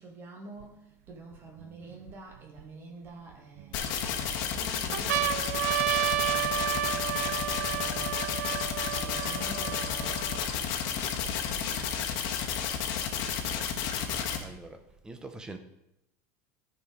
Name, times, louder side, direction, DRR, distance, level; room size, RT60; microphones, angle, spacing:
voice 1, 0.0-11.9, right 2 dB, 25° right, 0 dB, 2.1 m, -48 dB
sound 1, 0.6-0.7 1.4-2.6 3.3-4.1 4.6-4.7 4.9-10.5 11.3-11.4 11.5-12.5 13.5-14.5, right 13 dB, 85° right, 0.4 m, -32 dB
sound 2, 3.7-14.4, left 8 dB, 50° left, 1.3 m, -32 dB
voice 2, 14.1-15.6, right 2 dB, 10° right, 7 dB, 0.8 m, -46 dB
13.0 x 4.9 x 5.2 m, 0.82 s
supercardioid pair, 160°, 8 cm